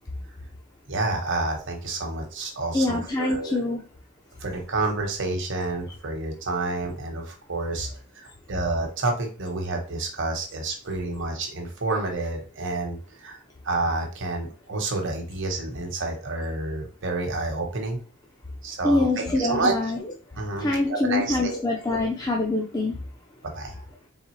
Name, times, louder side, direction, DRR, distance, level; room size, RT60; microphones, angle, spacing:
voice 1, 0.9-3.6 4.4-13.4 13.6-18.0 18.6-19.9 20.4-21.6 23.5-23.8, right 2 dB, 55° right, 2 dB, 1.0 m, -29 dB
voice 2, 2.7-3.8 18.8-20.0 20.6-23.0, left 2 dB, 15° left, 0 dB, 0.4 m, -24 dB
4.0 x 3.4 x 3.1 m, 0.39 s
head